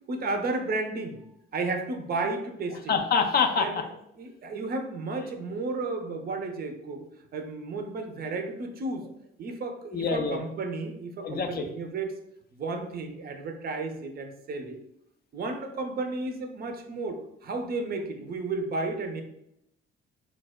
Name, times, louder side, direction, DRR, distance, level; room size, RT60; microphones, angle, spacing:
voice 1, 0.1-1.2 1.5-2.9 3.6-3.8 4.2-7.1 7.3-9.1 9.4-12.2 12.5-14.8 15.3-19.2, right 3 dB, 30° right, 6 dB, 0.5 m, -33 dB
voice 2, 2.7-3.9 5.2-5.3 9.9-10.4 11.2-11.7, left 5 dB, 35° left, 6 dB, 0.5 m, -26 dB
4.5 x 2.0 x 2.2 m, 0.80 s
figure-of-eight pair, 45°, 30 cm